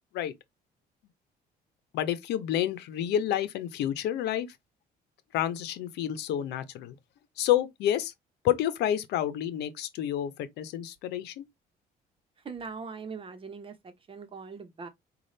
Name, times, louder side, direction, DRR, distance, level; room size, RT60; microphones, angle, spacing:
voice 1, 1.9-4.5 5.3-7.0 7.4-8.1 8.4-11.5, left 11 dB, 80° left, 0.8 m, -29 dB
voice 2, 12.4-14.9, right 5 dB, 30° right, 1.0 m, -41 dB
5.3 x 2.4 x 3.3 m
cardioid pair, 110°, 17 cm